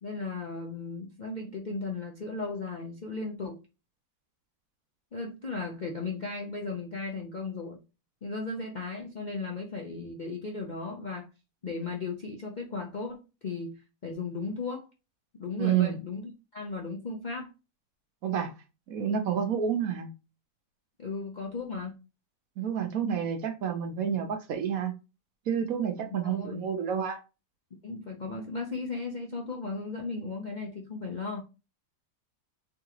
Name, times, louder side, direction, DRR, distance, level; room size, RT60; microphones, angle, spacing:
voice 1, 0.0-3.6 5.1-7.8 8.2-11.3 11.6-14.9 15.4-17.5 21.0-21.9 26.2-26.7 27.8-31.4, left 3 dB, 50° left, 0.5 m, -36 dB
voice 2, 15.6-16.0 18.2-18.5 18.9-20.1 22.6-24.9 25.5-27.2, right 8 dB, 65° right, 1.0 m, -29 dB
3.9 x 3.6 x 2.9 m
omnidirectional pair, 1.8 m